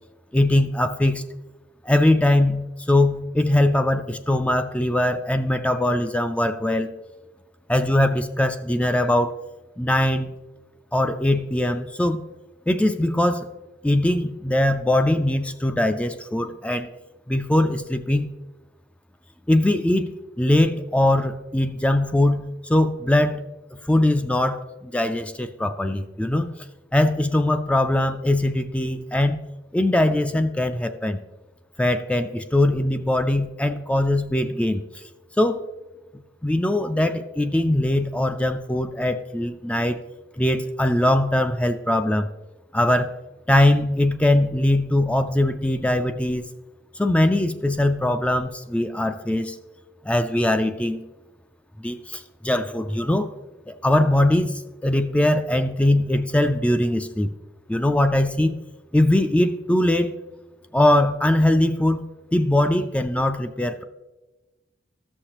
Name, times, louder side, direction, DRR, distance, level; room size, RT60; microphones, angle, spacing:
voice 1, 0.3-1.2 1.8-6.9 7.7-9.4 9.8-10.3 10.9-12.2 12.7-13.5 13.8-16.9 17.3-18.3 19.5-20.1 20.4-23.4 23.7-26.5 26.9-29.4 29.7-31.2 31.8-35.0 35.4-35.6 36.4-40.0 40.4-42.3 42.7-43.1 43.5-46.5 47.0-49.6 50.0-51.0 51.8-53.3 53.7-57.3 57.7-58.6 58.9-60.2 60.7-62.0 62.3-63.8, left 1 dB, 5° left, 8 dB, 0.3 m, -21 dB
14.0 x 6.5 x 2.9 m, 1.1 s
head